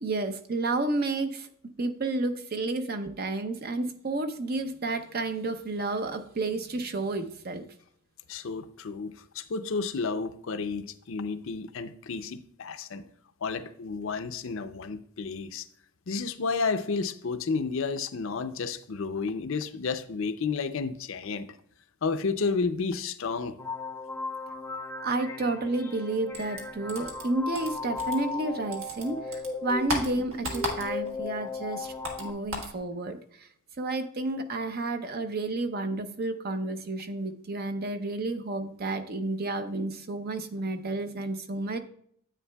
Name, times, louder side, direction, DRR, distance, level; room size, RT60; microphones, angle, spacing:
voice 1, 0.0-1.5 1.8-7.6 25.0-33.5 33.8-41.8, right 2 dB, 45° right, 8 dB, 0.7 m, -31 dB
voice 2, 8.3-13.0 13.4-15.7 16.1-21.5 22.0-23.5, left 4 dB, 65° left, 10 dB, 0.5 m, -31 dB
sound 1, 23.6-32.3, left 3 dB, 10° left, 0.6 m, -36 dB
sound 2, 26.3-28.5 28.7-31.2 31.5-32.8, equal, 70° right, 1.7 m, -35 dB
9.8 x 8.5 x 2.3 m, 0.65 s
head